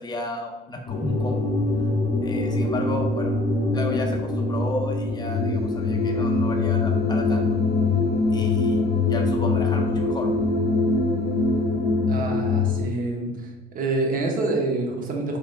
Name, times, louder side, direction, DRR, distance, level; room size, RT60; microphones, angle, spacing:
voice 1, 0.0-1.5 2.2-3.3 3.7-7.6 8.3-8.8 9.1-10.3, left 2 dB, 25° left, 2 dB, 0.5 m, -33 dB
sound 1, 0.9-12.8, left 3 dB, 85° left, 0.8 m, -23 dB
voice 2, 12.1-13.5 13.7-15.4, right 2 dB, 55° right, 1 dB, 0.9 m, -26 dB
3.7 x 3.5 x 2.5 m, 1.1 s
cardioid pair, 110°, 17 cm